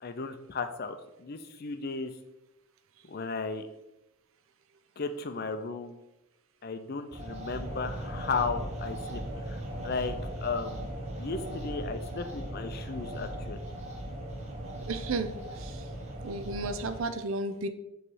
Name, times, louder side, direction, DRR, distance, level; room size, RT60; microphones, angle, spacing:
voice 1, 0.0-2.1 3.1-3.7 5.0-6.0 6.6-9.2 9.5-9.6 9.8-10.9 11.2-13.6, left 4 dB, 45° left, 8 dB, 0.5 m, -35 dB
sound 1, 7.1-17.0, right 1 dB, 30° right, 0.9 m, -38 dB
voice 2, 14.9-15.9 16.2-17.7, right 3 dB, 65° right, 10 dB, 0.5 m, -33 dB
5.5 x 3.2 x 5.4 m, 0.93 s
head